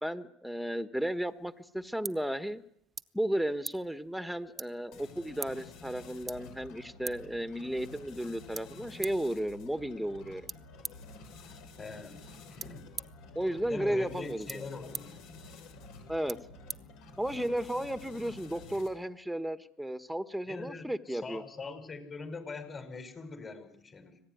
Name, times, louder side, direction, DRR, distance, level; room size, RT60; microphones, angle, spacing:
voice 1, 0.0-2.6 3.1-10.5 13.3-14.7 16.1-16.4 17.2-21.4, right 1 dB, ahead, 10 dB, 1.5 m, -34 dB
sound 1, 1.3-17.6, right 6 dB, 30° right, 1.0 m, -48 dB
sound 2, 4.9-19.1, left 3 dB, 75° left, 6.6 m, -50 dB
voice 2, 11.8-12.2 12.5-12.9 13.6-15.2 20.5-24.2, left 4 dB, 30° left, 10 dB, 5.3 m, -43 dB
25.5 x 18.0 x 9.5 m, 0.76 s
supercardioid pair, 90°, 0 cm